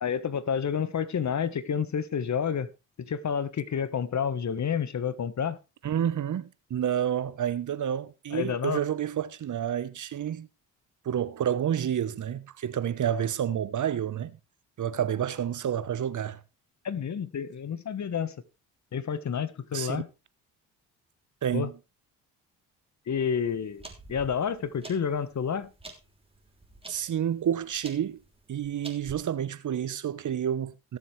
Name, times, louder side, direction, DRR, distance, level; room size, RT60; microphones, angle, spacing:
voice 1, 0.0-2.7 3.0-5.6 8.3-8.8 16.8-18.3 18.9-20.1 21.5-21.7 23.1-25.7, left 7 dB, 40° left, 1.4 m, -29 dB
voice 2, 5.8-10.5 11.0-14.3 14.8-16.4 19.7-20.0 21.4-21.7 26.9-28.2 28.5-31.0, right 9 dB, 45° right, 1.1 m, -29 dB
sound 1, 23.2-29.1, right 2 dB, 15° right, 3.3 m, -49 dB
18.0 x 7.3 x 3.3 m
hypercardioid pair, 55°, 41 cm